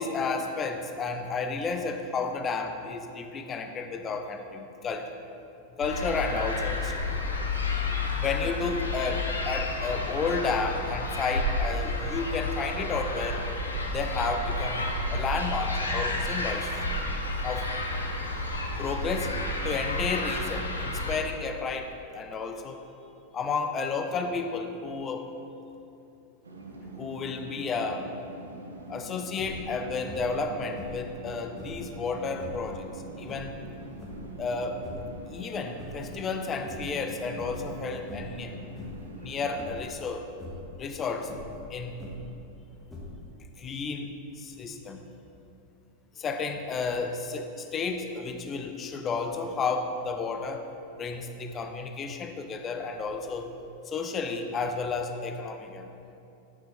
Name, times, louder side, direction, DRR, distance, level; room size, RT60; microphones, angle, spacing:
voice 1, 0.0-5.1 5.8-6.9 8.1-13.5 13.9-14.8 15.1-16.7 17.4-17.7 18.8-19.3 19.6-22.8 23.3-25.3 26.9-28.1 28.9-32.9 33.2-33.5 34.4-34.8 35.3-38.6 39.2-40.3 40.7-41.3 41.7-42.0 43.6-44.1 44.4-45.0 46.2-50.7 51.0-53.5 53.9-55.9, left 4 dB, 25° left, 6 dB, 0.6 m, -32 dB
sound 1, 5.8-21.2, left 2 dB, 75° left, 0.7 m, -31 dB
sound 2, 26.4-39.6, right 2 dB, 75° right, 0.7 m, -44 dB
Giant Wings Flapping, 29.3-29.7 30.1-30.5 30.7-31.9 32.3-32.7 33.2-34.4 34.7-35.2 35.6-36.4 36.6-37.0 37.3-37.7 38.1-38.4 38.7-39.1 39.6-39.9 40.3-40.7 41.2-42.4 42.9-43.4, left 2 dB, 5° left, 1.4 m, -43 dB
8.7 x 5.9 x 3.2 m, 2.7 s
figure-of-eight pair, 90°, 0 cm